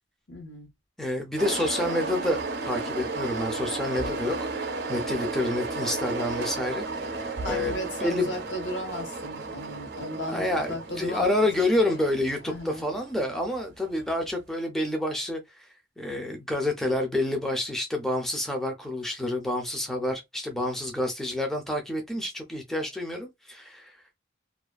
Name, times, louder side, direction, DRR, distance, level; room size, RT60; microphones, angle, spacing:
voice 1, 0.3-0.7 7.0-11.2 11.8-12.0 12.5-12.8, equal, 75° left, 1.0 m, -36 dB
voice 2, 1.0-8.3 10.3-15.7 16.0-24.1, left 1 dB, ahead, 0.4 m, -29 dB
sound 1, 1.4-14.1, right 3 dB, 60° right, 0.5 m, -34 dB
2.3 x 2.2 x 2.3 m
head